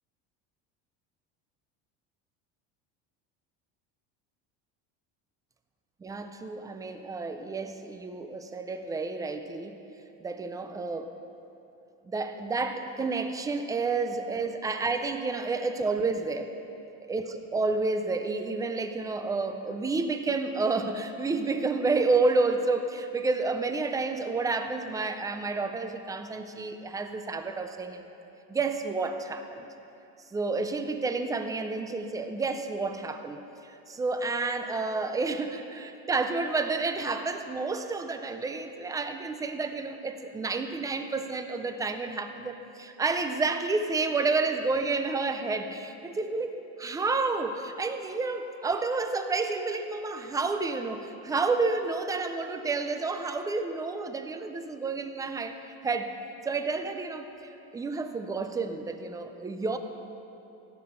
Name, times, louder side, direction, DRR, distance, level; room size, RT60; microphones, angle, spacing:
voice 1, 6.0-9.8 10.2-11.1 12.1-16.5 17.1-28.1 28.5-29.7 30.3-55.6 55.8-56.1 56.5-57.3 57.7-59.8, right 3 dB, 10° right, 8 dB, 0.3 m, -30 dB
16.0 x 6.6 x 5.5 m, 2.8 s
cardioid pair, 155°, 35 cm